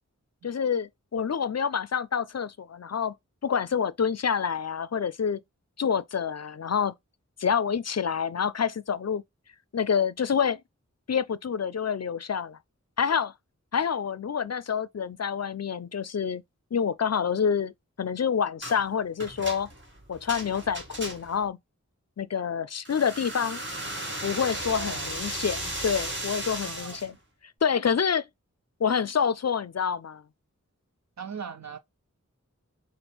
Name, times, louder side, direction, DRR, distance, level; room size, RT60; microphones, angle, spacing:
voice 1, 0.4-3.1 3.4-5.4 5.8-6.9 7.4-9.2 9.7-10.6 11.1-12.6 13.0-13.3 13.7-16.4 16.7-17.7 18.0-19.7 20.1-21.6 22.2-23.6 24.2-27.1 27.6-28.3 28.8-30.2, left 7 dB, 55° left, 0.4 m, -27 dB
sound 1, 18.6-18.8 19.2-21.5 22.8-27.1, right 1 dB, 35° right, 1.7 m, -35 dB
voice 2, 24.7-25.1 26.6-27.0 31.2-31.8, right 5 dB, 60° right, 0.7 m, -39 dB
5.9 x 2.1 x 3.3 m
wide cardioid pair, 40°, 31 cm